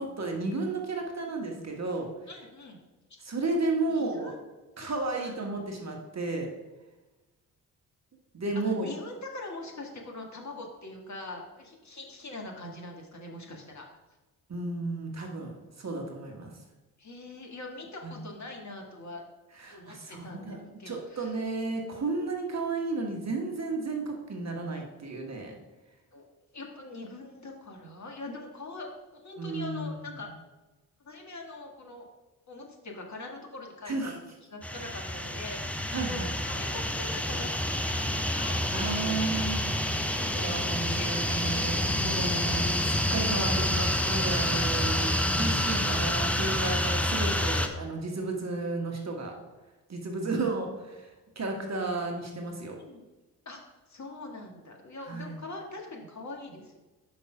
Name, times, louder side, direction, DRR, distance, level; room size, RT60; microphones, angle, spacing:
voice 1, 0.0-2.1 3.2-4.3 4.8-6.5 8.3-8.9 14.5-16.5 18.0-18.2 19.6-20.6 20.8-25.5 29.4-30.0 33.9-34.1 35.9-36.3 38.7-39.6 39.9-49.3 49.9-52.8 55.1-55.4, right 3 dB, 35° right, 2 dB, 1.5 m, -33 dB
voice 2, 2.3-2.8 3.9-4.3 4.8-5.4 8.8-13.8 17.0-19.2 19.7-21.4 26.1-26.2 26.5-30.3 31.0-32.1 32.5-36.2 36.5-39.4 40.1-41.1 52.8-53.0 53.4-56.8, left 2 dB, 35° left, 1 dB, 1.7 m, -43 dB
sound 1, 34.6-47.7, left 1 dB, 5° left, 0.6 m, -28 dB
5.5 x 5.3 x 4.9 m, 1.1 s
hypercardioid pair, 40°, 47 cm